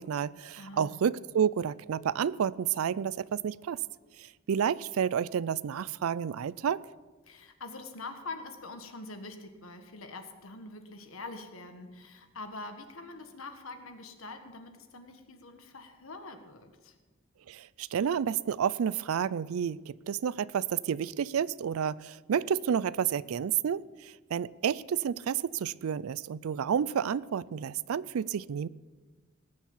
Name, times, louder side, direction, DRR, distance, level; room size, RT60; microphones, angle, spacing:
voice 1, 0.0-3.8 4.2-6.9 17.5-28.7, right 8 dB, 85° right, 0.4 m, -30 dB
voice 2, 0.5-1.0 7.2-16.9, left 3 dB, 75° left, 1.6 m, -44 dB
19.0 x 7.2 x 7.2 m
head